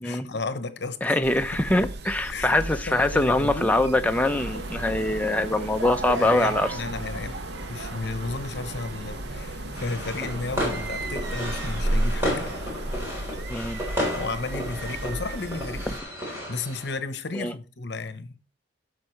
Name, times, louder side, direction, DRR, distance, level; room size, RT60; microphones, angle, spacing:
voice 1, 0.0-1.2 1.5-1.6 2.3-3.7 6.2-7.4 7.7-12.5 14.1-16.0 16.3-18.4, left 3 dB, 60° left, 0.9 m, -33 dB
voice 2, 1.0-6.8 13.5-13.8 17.3-17.5, left 1 dB, 10° left, 0.5 m, -23 dB
sound 1, 1.2-16.0, right 1 dB, 60° right, 0.8 m, -34 dB
sound 2, 4.1-13.1, right 2 dB, 80° right, 1.4 m, -39 dB
sound 3, 9.7-16.9, equal, 15° right, 3.8 m, -33 dB
14.0 x 6.4 x 3.2 m
head